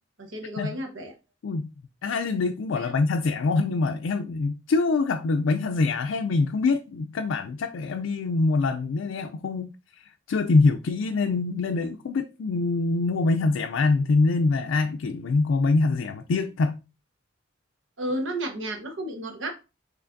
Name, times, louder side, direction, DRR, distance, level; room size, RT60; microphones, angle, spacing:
voice 1, 0.2-1.1 2.7-2.9 18.0-19.5, right 1 dB, 75° right, 1.0 m, -32 dB
voice 2, 2.0-16.8, left 3 dB, 80° left, 0.4 m, -24 dB
5.6 x 3.2 x 2.5 m
head